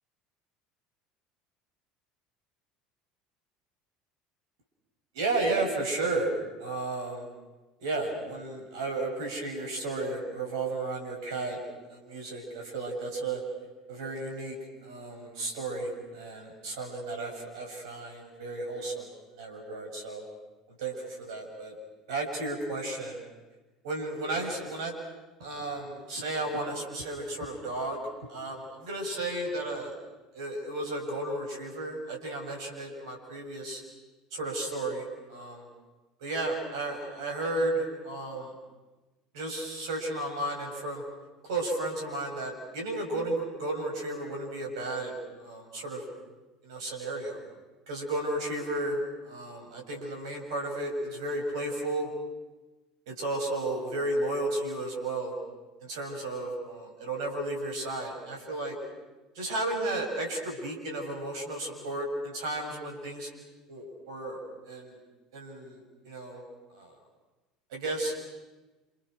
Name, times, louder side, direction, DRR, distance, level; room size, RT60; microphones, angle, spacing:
voice 1, 5.1-6.3 6.6-7.3 7.8-11.6 11.9-13.4 13.9-14.6 14.8-20.2 20.7-21.7 22.1-23.2 23.8-25.0 25.4-28.0 28.3-29.9 30.3-33.8 34.3-35.7 36.2-38.6 39.3-41.0 41.4-46.0 46.6-47.4 47.9-52.1 53.1-55.3 55.8-58.8 59.3-63.3 63.7-65.0 65.3-66.4 66.7-67.0 67.7-68.2, right 2 dB, 70° right, 2 dB, 7.3 m, -33 dB
29.5 x 28.5 x 6.5 m, 1.1 s
figure-of-eight pair, 65°, 3 cm